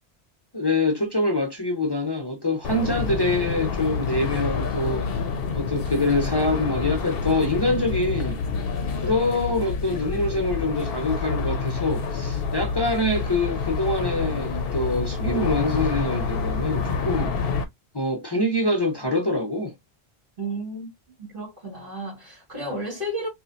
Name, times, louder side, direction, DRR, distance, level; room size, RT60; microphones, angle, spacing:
voice 1, 0.5-5.1 5.5-8.4 9.0-17.3 17.9-19.7, left 2 dB, 30° left, 0.6 m, -25 dB
sound 1, 2.6-17.6, left 5 dB, 65° left, 0.9 m, -28 dB
voice 2, 20.4-20.9 21.2-23.3, right 1 dB, 55° right, 2.1 m, -32 dB
4.1 x 2.4 x 2.5 m
omnidirectional pair, 1.1 m